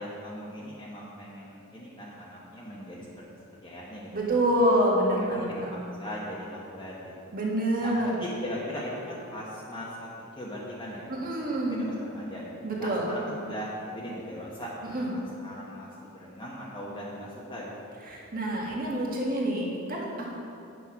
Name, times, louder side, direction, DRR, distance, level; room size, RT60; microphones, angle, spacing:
voice 1, 0.0-3.3 3.6-4.4 5.1-7.4 7.8-10.1 10.3-11.3 11.7-12.4 12.8-14.7 15.1-17.7, equal, 20° left, -6 dB, 1.1 m, -39 dB
voice 2, 4.1-5.5 7.3-8.2 11.1-11.8 12.6-13.1 14.8-15.1 18.1-20.3, right 1 dB, 45° right, -3 dB, 1.7 m, -27 dB
9.1 x 6.0 x 5.7 m, 2.6 s
head